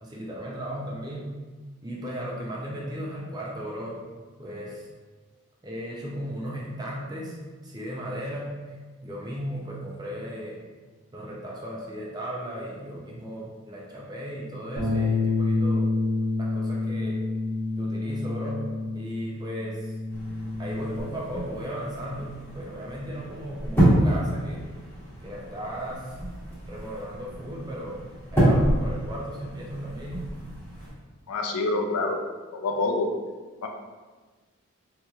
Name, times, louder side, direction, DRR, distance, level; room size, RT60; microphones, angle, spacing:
voice 1, 0.0-1.3 1.8-4.0 4.4-4.9 5.6-7.4 7.6-8.8 9.0-10.6 11.1-15.9 16.4-17.2 17.8-18.7 18.9-20.0 20.6-24.7 25.2-26.2 26.7-28.0 28.3-30.3, equal, 20° right, -4 dB, 0.6 m, -36 dB
Bass guitar, 14.8-21.0, left 3 dB, 90° right, 1.2 m, -28 dB
sound 1, 20.1-30.9, right 1 dB, 10° left, 1.1 m, -28 dB
voice 2, 31.3-32.2 32.5-33.1 33.6-33.7, left 3 dB, 90° left, 3 dB, 0.5 m, -26 dB
4.3 x 2.9 x 2.4 m, 1.3 s
head